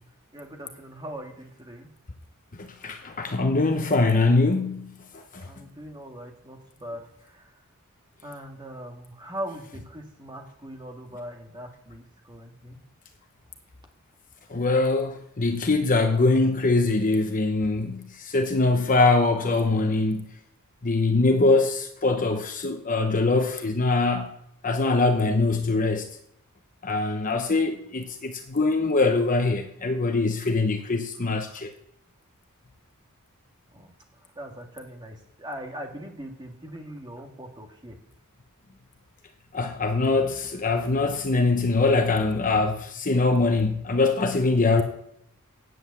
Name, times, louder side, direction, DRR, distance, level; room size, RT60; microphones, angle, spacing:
voice 1, 0.3-1.9 5.4-7.6 8.2-12.8 31.5-31.6 33.7-33.9 34.3-38.0, equal, 20° right, 1.8 m, -40 dB
voice 2, 2.6-4.9 5.3-5.5 14.5-20.3 20.8-24.3 24.6-26.1 26.8-31.7 39.5-44.8, left 3 dB, 35° left, 0.9 m, -23 dB
9.4 x 8.0 x 8.1 m
head